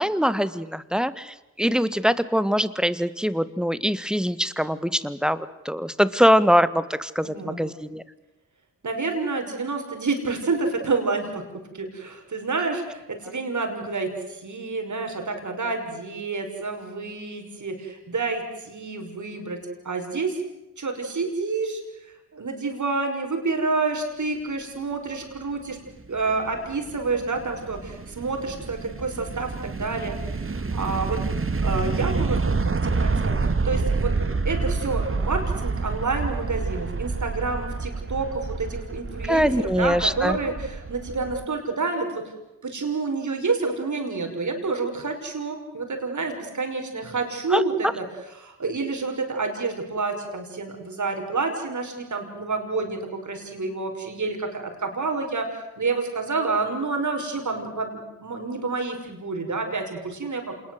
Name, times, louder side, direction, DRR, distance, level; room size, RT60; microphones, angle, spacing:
voice 1, 0.0-8.0 39.3-40.4 47.5-47.6, equal, ahead, 14 dB, 1.7 m, -23 dB
voice 2, 7.2-7.6 8.8-11.4 11.7-20.4 20.8-25.8 26.1-31.2 31.6-34.1 34.4-42.3 42.6-48.0 48.4-60.5, right 3 dB, 55° right, 4 dB, 6.0 m, -29 dB
sound 1, 25.9-41.4, right 4 dB, 35° right, 2.0 m, -28 dB
27.0 x 21.0 x 8.0 m, 0.95 s
supercardioid pair, 45°, 35 cm